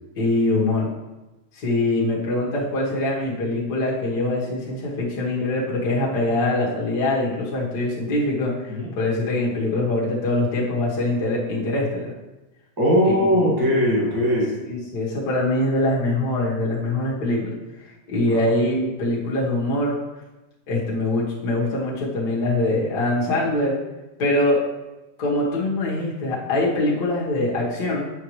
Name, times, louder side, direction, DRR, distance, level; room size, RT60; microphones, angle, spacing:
voice 1, 0.2-0.9 1.6-12.1 13.0-13.3 14.7-17.5 18.1-20.0 20.7-23.8 24.2-24.6 25.2-28.1, left 2 dB, 45° left, -5 dB, 1.7 m, -23 dB
voice 2, 12.8-14.5 18.2-18.4, equal, 10° right, -6 dB, 1.2 m, -20 dB
8.1 x 5.7 x 3.2 m, 1.1 s
omnidirectional pair, 3.3 m